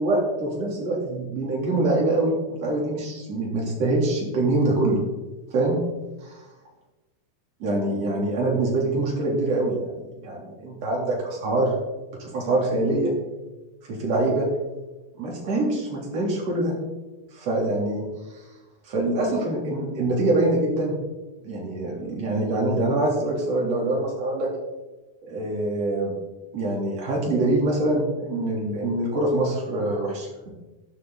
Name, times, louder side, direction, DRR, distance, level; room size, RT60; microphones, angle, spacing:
voice 1, 0.0-5.0 5.5-5.8 6.2-6.4 7.6-11.7 12.2-13.1 13.9-14.5 15.2-16.7 17.3-18.0 18.3-18.4 18.8-21.0 21.4-24.5 25.2-26.1 26.5-30.5, right 2 dB, 45° right, -3 dB, 4.3 m, -24 dB
12.0 x 12.0 x 4.1 m, 1.1 s
omnidirectional pair, 4.2 m